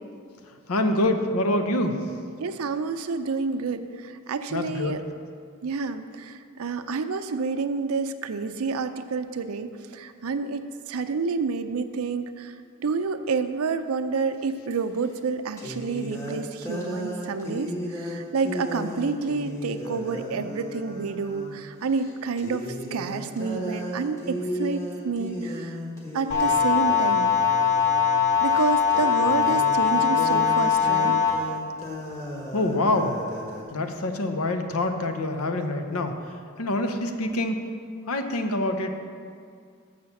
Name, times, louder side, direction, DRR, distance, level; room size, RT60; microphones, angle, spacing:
voice 1, 0.7-2.0 4.5-5.0 32.5-33.2 33.7-36.2 36.6-37.6 38.1-38.9, left 1 dB, 75° left, 6 dB, 0.7 m, -25 dB
voice 2, 2.4-5.0 5.6-12.5 12.8-22.7 22.9-25.8 26.1-27.3 28.4-31.2, right 4 dB, 75° right, 10 dB, 0.5 m, -29 dB
sound 1, 14.7-14.8 15.6-21.6 21.9-22.1 22.4-33.6, left 1 dB, 15° left, 1.1 m, -35 dB
sound 2, 26.3-31.3, left 7 dB, 35° left, 1.5 m, -21 dB
6.6 x 6.3 x 7.0 m, 2.2 s
head